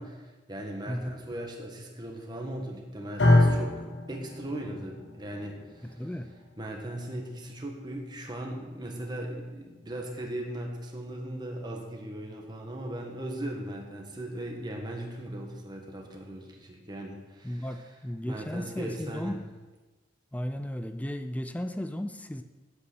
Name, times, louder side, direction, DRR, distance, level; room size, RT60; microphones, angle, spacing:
voice 1, 0.0-3.8 4.1-6.1 6.6-17.9 18.2-19.3, right 1 dB, 25° right, 1 dB, 1.5 m, -38 dB
sound 1, 3.2-11.4, left 1 dB, 75° left, 1.5 m, -30 dB
voice 2, 6.0-6.3 17.4-19.4 20.3-22.4, equal, 10° left, 9 dB, 0.4 m, -35 dB
8.4 x 8.0 x 6.3 m, 1.2 s
head